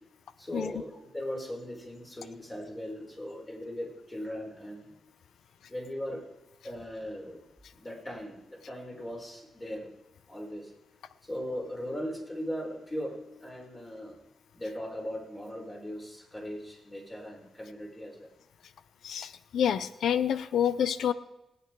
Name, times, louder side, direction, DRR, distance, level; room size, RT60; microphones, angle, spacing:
voice 1, 0.4-4.9 5.7-6.2 6.6-7.4 7.7-9.9 10.3-10.7 11.2-14.2 14.5-18.3, equal, 25° left, -1 dB, 4.9 m, -39 dB
voice 2, 19.0-21.1, left 9 dB, 85° left, 15 dB, 0.6 m, -28 dB
19.0 x 9.1 x 4.7 m, 0.92 s
cardioid pair, 75°, 0 cm